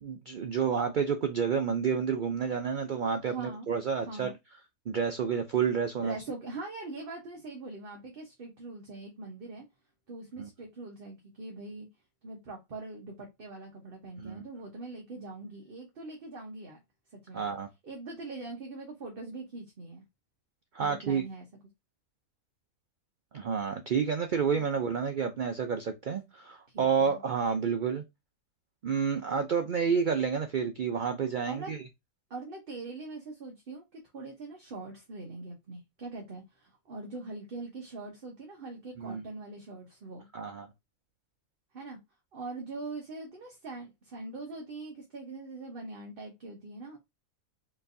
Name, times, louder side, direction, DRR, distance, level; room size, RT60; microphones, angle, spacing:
voice 1, 0.0-4.3 4.9-6.2 10.4-10.5 14.2-14.4 17.3-17.7 20.7-21.2 23.3-28.0 28.8-31.8 39.0-39.2 40.3-40.7, right 6 dB, 80° right, 0.4 m, -29 dB
voice 2, 3.2-3.7 4.1-4.3 6.0-9.6 10.1-11.9 12.2-16.8 17.1-17.4 17.8-20.0 20.8-21.5 24.5-24.6 26.7-27.2 31.5-31.8 32.3-40.3 41.7-42.0 42.3-47.0, right 3 dB, 45° right, 1.1 m, -42 dB
4.6 x 3.1 x 2.6 m
omnidirectional pair, 1.5 m